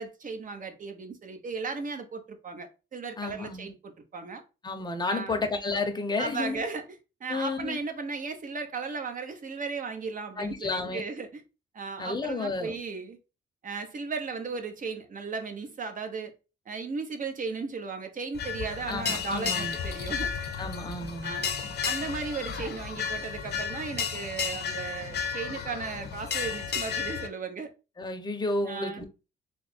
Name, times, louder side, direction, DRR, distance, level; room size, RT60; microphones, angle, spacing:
voice 1, 0.0-4.4 5.1-5.4 6.2-6.8 7.2-11.4 11.7-13.2 13.6-16.3 16.7-20.3 21.2-21.5 21.8-27.7 28.6-29.0, right 4 dB, 40° right, 0.9 m, -36 dB
voice 2, 3.2-3.7 4.6-6.6 7.3-7.8 10.4-11.0 12.0-12.8 18.9-19.8 20.6-21.4 28.0-29.0, left 3 dB, 20° left, 0.8 m, -31 dB
sound 1, 18.3-27.3, left 6 dB, 55° left, 0.8 m, -33 dB
3.4 x 2.1 x 4.1 m
cardioid pair, 90°, 20 cm